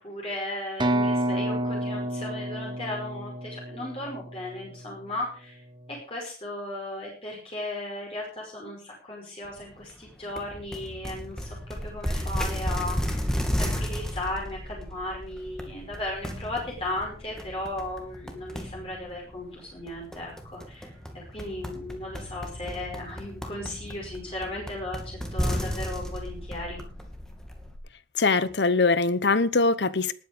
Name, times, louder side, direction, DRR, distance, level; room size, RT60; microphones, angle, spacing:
voice 1, 0.0-5.6 6.1-13.2 13.6-26.8, left 1 dB, 30° left, 5.3 m, -36 dB
sound 1, 0.8-4.6, right 1 dB, 25° right, 1.4 m, -29 dB
sound 2, 10.4-27.8, equal, 5° left, 2.5 m, -34 dB
voice 2, 28.2-30.1, left 3 dB, 75° left, 1.0 m, -22 dB
19.5 x 9.5 x 5.1 m
head